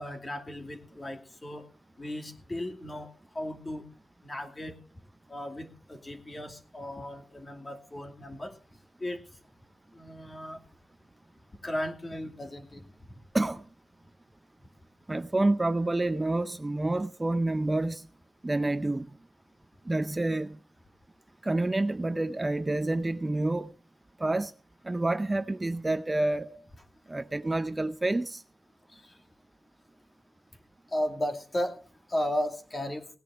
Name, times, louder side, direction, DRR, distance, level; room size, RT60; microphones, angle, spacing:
voice 1, 0.0-1.7 2.0-3.9 4.2-4.8 5.3-8.6 9.0-9.2 9.9-10.6 11.6-13.2 26.5-26.6 28.9-29.2 30.9-31.8 32.1-33.1, left 1 dB, 30° left, 2.6 m, -35 dB
voice 2, 15.1-18.1 18.4-19.1 19.9-20.6 21.4-23.7 24.2-24.5 24.8-26.5 27.1-28.4, right 2 dB, 20° right, 0.6 m, -28 dB
17.5 x 10.5 x 4.8 m
wide cardioid pair, 105°, 0 cm